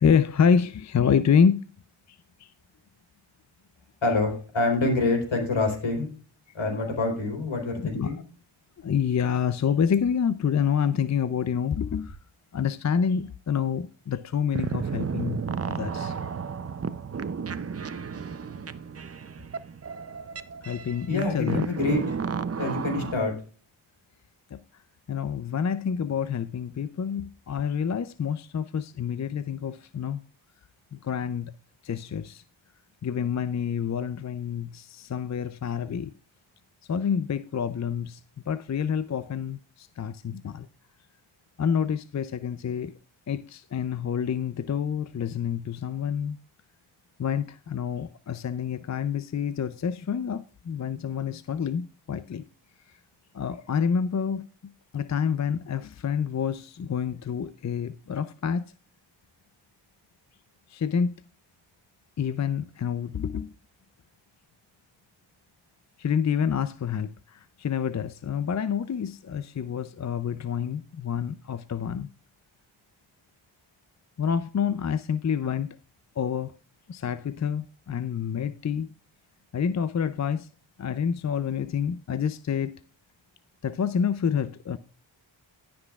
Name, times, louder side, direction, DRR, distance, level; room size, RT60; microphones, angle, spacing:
voice 1, 0.0-1.6 2.1-2.5 7.8-8.1 8.8-12.2 12.5-16.2 20.6-21.6 23.0-23.1 24.5-24.6 25.1-30.2 31.0-31.5 31.8-32.4 33.0-36.1 36.9-38.2 38.5-40.7 41.6-42.9 43.3-46.4 47.2-52.4 53.3-54.5 54.9-58.7 60.7-61.1 62.2-63.5 66.0-72.1 74.2-75.7 76.2-76.5 76.9-78.9 79.5-80.5 80.8-82.7 83.6-84.8, left 7 dB, 35° left, 0.5 m, -27 dB
voice 2, 4.0-6.1 6.5-8.2 21.1-22.2 22.6-23.3, left 2 dB, 70° left, 4.2 m, -26 dB
sound 1, 14.5-23.1, right 6 dB, 30° right, 0.6 m, -33 dB
17.5 x 6.1 x 2.4 m
cardioid pair, 55°, 49 cm